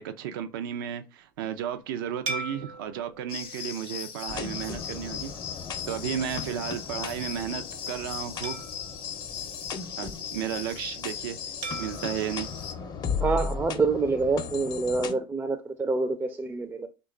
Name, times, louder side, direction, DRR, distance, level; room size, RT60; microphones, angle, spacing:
voice 1, 0.0-5.3 5.9-8.6 10.0-11.4 11.8-12.5, right 9 dB, 90° right, 0.4 m, -33 dB
sound 1, 2.3-4.9 5.5-5.7 8.4-10.2 11.6-13.9, right 3 dB, 65° right, 0.9 m, -41 dB
sound 2, 3.3-12.7, left 8 dB, 90° left, 0.6 m, -39 dB
sound 3, 4.3-15.1, left 5 dB, 40° left, 0.5 m, -37 dB
voice 2, 13.2-16.9, right 3 dB, 20° right, 0.4 m, -27 dB
3.1 x 2.3 x 3.7 m
supercardioid pair, 90°, 11 cm